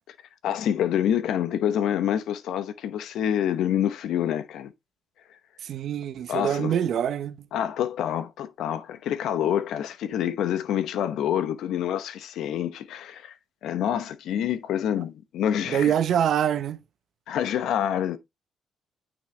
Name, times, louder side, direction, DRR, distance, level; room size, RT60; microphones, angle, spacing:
voice 1, 0.4-4.7 6.3-6.7 7.5-13.3 13.6-15.9 17.3-18.2, left 10 dB, 80° left, 0.8 m, -27 dB
voice 2, 5.6-7.4 15.7-16.8, right 9 dB, 65° right, 0.7 m, -25 dB
9.3 x 3.9 x 3.2 m
cardioid pair, 90°, 0 cm